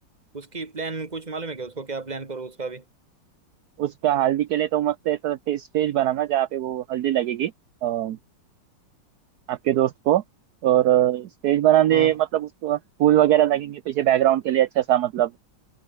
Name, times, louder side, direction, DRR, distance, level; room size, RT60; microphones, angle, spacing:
voice 1, 0.3-2.8 11.9-12.1, right 3 dB, 25° right, 2.2 m, -33 dB
voice 2, 3.8-7.5 7.8-8.2 9.5-10.2 10.6-15.3, right 12 dB, 65° right, 1.2 m, -21 dB
omnidirectional pair, 2.0 m